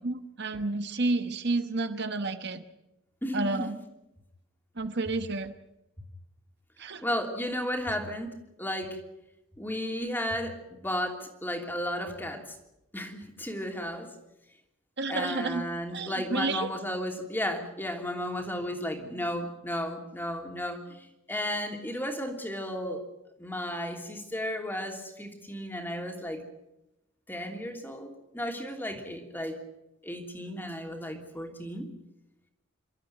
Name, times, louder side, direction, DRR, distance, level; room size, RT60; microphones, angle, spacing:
voice 1, 0.0-2.6 3.3-3.8 4.8-5.5 6.8-7.0 15.0-16.7, right 3 dB, 55° right, 8 dB, 1.2 m, -30 dB
voice 2, 3.2-3.7 7.0-9.0 9.6-10.6 10.8-12.4 12.9-14.1 15.1-23.0 23.4-26.4 27.3-29.6 30.0-31.9, equal, 10° left, 3 dB, 3.0 m, -34 dB
28.0 x 13.0 x 9.2 m, 0.90 s
head